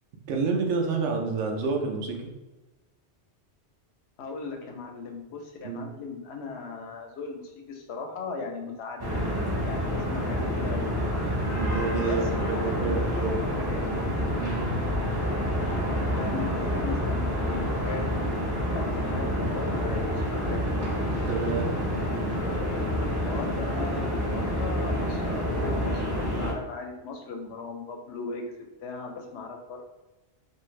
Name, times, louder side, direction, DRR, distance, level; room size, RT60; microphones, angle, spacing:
voice 1, 0.3-2.3 5.6-5.9 9.8-10.1 11.5-13.4 14.4-14.7 21.3-21.7, right 4 dB, 90° right, 2 dB, 0.9 m, -29 dB
voice 2, 4.2-9.2 9.6-10.9 12.0-13.8 16.2-18.0 18.7-20.6 23.2-29.8, left 4 dB, 75° left, 2 dB, 0.8 m, -37 dB
sound 1, 9.0-26.5, equal, 30° right, 0.5 m, -28 dB
2.6 x 2.4 x 3.1 m, 1.1 s
omnidirectional pair, 1.1 m